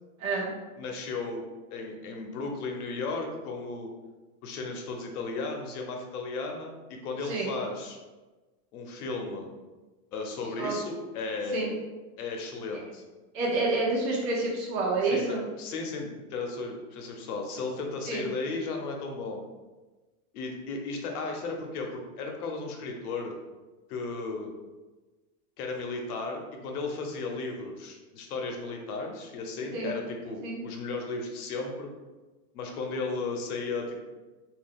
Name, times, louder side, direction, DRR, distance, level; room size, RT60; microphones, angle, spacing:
voice 1, 0.2-0.5 7.2-7.5 10.6-10.8 11.5-11.7 13.3-15.4 18.0-18.3 29.7-30.0 30.4-30.6, right 3 dB, 65° right, -3 dB, 1.0 m, -28 dB
voice 2, 0.8-1.4 1.7-3.9 4.4-8.0 8.7-9.5 10.1-11.8 12.2-13.0 15.0-19.5 20.3-23.3 23.9-24.5 25.6-31.9 32.5-34.0, left 3 dB, 85° left, 2 dB, 0.8 m, -35 dB
2.7 x 2.3 x 3.6 m, 1.2 s
supercardioid pair, 175°, 44 cm